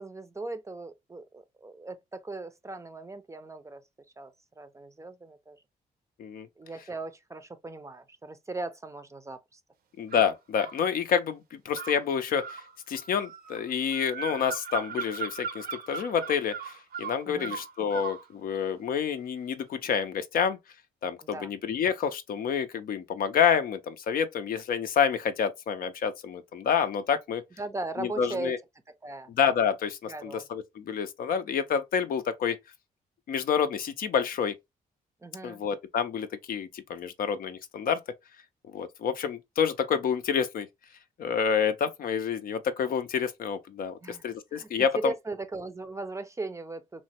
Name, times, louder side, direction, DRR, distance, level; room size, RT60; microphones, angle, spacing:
voice 1, 0.0-3.8 4.2-5.6 6.6-9.6 17.3-17.6 21.2-21.5 27.6-28.5 29.0-29.3 30.1-30.4 35.2-35.6 44.0-44.2 44.5-47.0, right 2 dB, 20° right, 0.5 m, -38 dB
voice 2, 10.0-20.6 21.0-27.4 28.0-28.6 29.3-32.6 33.3-34.5 35.4-38.0 38.7-40.7 41.2-45.1, left 7 dB, 65° left, 0.5 m, -28 dB
sound 1, 10.1-10.8 11.7-18.3, right 7 dB, 70° right, 0.6 m, -38 dB
3.0 x 2.1 x 2.8 m
cardioid pair, 75°, 16 cm